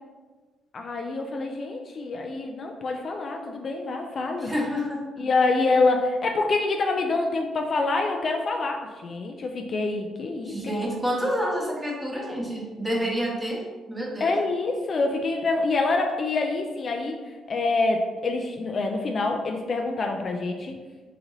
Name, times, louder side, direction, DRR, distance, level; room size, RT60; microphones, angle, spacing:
voice 1, 0.7-4.5 5.2-10.6 14.2-17.2 17.5-20.7, left 3 dB, 45° left, 3 dB, 0.3 m, -26 dB
voice 2, 4.4-5.0 10.5-14.4, equal, 10° right, -2 dB, 0.9 m, -28 dB
3.8 x 2.5 x 3.0 m, 1.3 s
cardioid pair, 90°, 0 cm